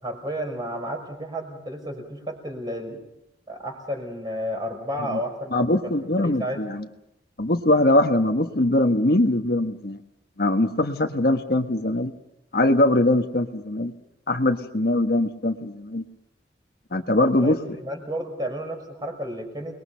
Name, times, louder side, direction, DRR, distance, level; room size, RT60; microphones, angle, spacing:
voice 1, 0.0-3.0 3.5-6.0 6.2-6.7 17.2-19.8, equal, 20° right, 3 dB, 5.5 m, -32 dB
voice 2, 5.5-6.8 7.4-10.0 10.4-12.1 12.5-13.9 14.3-16.0 16.9-17.6, left 1 dB, 55° left, 5 dB, 1.4 m, -22 dB
29.0 x 21.5 x 5.7 m, 0.86 s
head